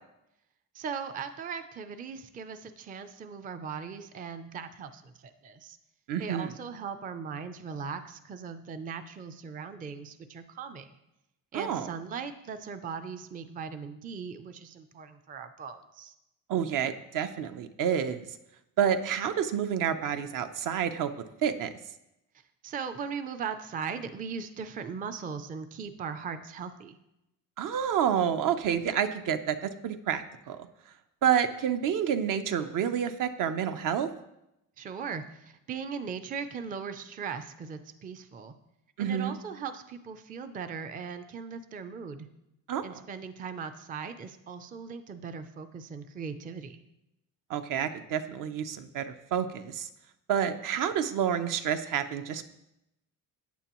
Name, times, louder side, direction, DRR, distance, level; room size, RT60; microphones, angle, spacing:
voice 1, 0.7-5.8 6.2-10.9 11.5-16.1 22.6-27.0 34.8-38.5 39.0-42.3 42.8-46.8, right 6 dB, 25° right, 9 dB, 0.4 m, -39 dB
voice 2, 6.1-6.5 11.5-11.9 16.5-18.3 18.8-21.1 21.4-21.7 27.6-30.6 31.2-34.1 39.0-39.3 42.7-42.8 47.5-49.9 50.3-52.5, right 8 dB, 65° right, 9 dB, 0.7 m, -29 dB
14.0 x 9.2 x 3.0 m, 0.87 s
cardioid pair, 180°, 36 cm